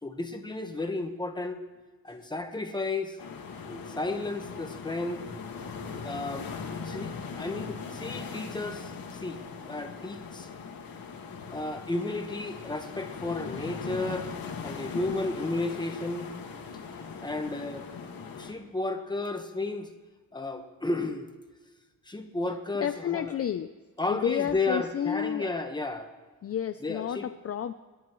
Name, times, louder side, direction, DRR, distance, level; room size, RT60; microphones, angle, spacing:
voice 1, 0.0-1.6 2.0-3.2 3.7-5.2 6.0-6.5 6.8-10.5 11.5-14.3 14.6-16.3 17.2-17.8 18.4-19.9 20.3-21.3 22.1-23.3 24.0-26.1 26.8-27.3, left 2 dB, 10° left, 5 dB, 1.2 m, -33 dB
sound 1, 3.2-18.5, left 5 dB, 85° left, 1.9 m, -40 dB
voice 2, 22.8-23.7 24.1-25.5 26.4-27.7, left 9 dB, 45° left, 9 dB, 0.5 m, -31 dB
29.0 x 10.5 x 3.1 m, 1.4 s
wide cardioid pair, 170°, 34 cm